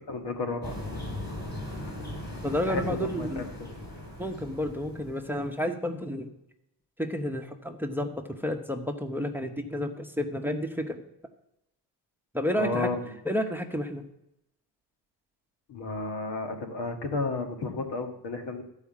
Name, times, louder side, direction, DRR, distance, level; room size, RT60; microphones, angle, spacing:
voice 1, 0.1-0.8 2.7-3.7 12.6-13.0 15.7-18.6, left 3 dB, 85° left, 4 dB, 1.7 m, -32 dB
sound 1, 0.6-5.6, left 1 dB, 25° left, 3.7 m, -39 dB
voice 2, 2.4-3.5 4.2-6.3 7.0-11.0 12.3-12.9 13.2-14.0, equal, 5° right, 6 dB, 0.8 m, -31 dB
13.5 x 4.9 x 7.2 m, 0.84 s
cardioid pair, 120°, 41 cm